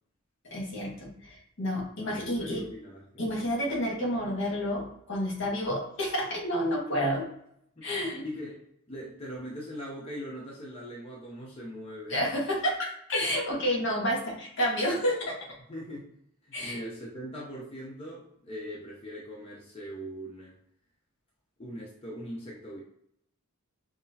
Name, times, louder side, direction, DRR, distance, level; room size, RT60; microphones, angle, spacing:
voice 1, 0.5-2.6 3.2-7.2 7.8-8.2 12.1-15.4 16.5-16.8, equal, 60° left, -2 dB, 1.4 m, -30 dB
voice 2, 2.0-3.5 7.8-12.3 15.7-16.1 16.4-20.6 21.6-22.8, equal, 25° left, -4 dB, 0.7 m, -41 dB
5.9 x 2.0 x 2.8 m, 0.73 s
head